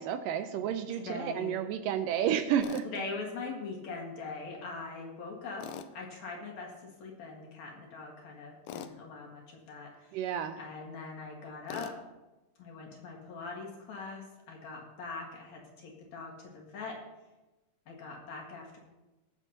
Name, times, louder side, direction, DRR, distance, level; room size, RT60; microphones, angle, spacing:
voice 1, 0.0-2.9 10.1-10.6, right 9 dB, 80° right, 9 dB, 2.1 m, -31 dB
voice 2, 0.6-1.6 2.8-10.1 10.6-12.0 12.6-17.0 17.9-18.8, left 4 dB, 55° left, -1 dB, 2.7 m, -42 dB
Tools, 2.6-2.9 5.6-5.9 8.7-9.0 11.7-12.0, left 8 dB, 80° left, 1.8 m, -41 dB
21.0 x 7.2 x 2.8 m, 1.1 s
omnidirectional pair, 4.1 m